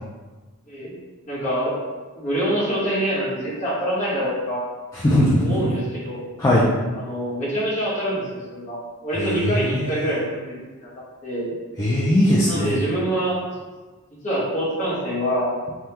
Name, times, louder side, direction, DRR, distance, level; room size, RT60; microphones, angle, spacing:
voice 1, 1.3-1.8 2.1-4.6 5.4-6.3 6.9-11.5 12.5-13.4 14.2-15.5, right 1 dB, 35° left, -8 dB, 1.0 m, -25 dB
voice 2, 4.9-5.4 6.4-6.6 9.1-10.1 11.8-12.8, left 1 dB, 15° left, -8 dB, 0.3 m, -20 dB
3.3 x 2.3 x 2.9 m, 1.3 s
head